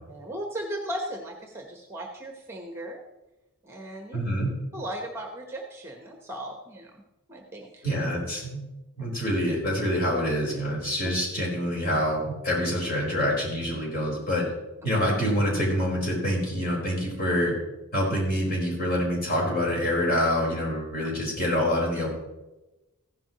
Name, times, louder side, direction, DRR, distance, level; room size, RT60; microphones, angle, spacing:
voice 1, 0.1-3.0 3.6-4.2 4.7-7.0 7.3-7.8, right 1 dB, 10° right, 2 dB, 1.2 m, -36 dB
voice 2, 4.1-4.5 7.8-8.6 9.0-14.5 14.8-17.5 17.9-22.1, equal, 40° left, -3 dB, 4.7 m, -26 dB
15.5 x 11.0 x 3.1 m, 1.0 s
head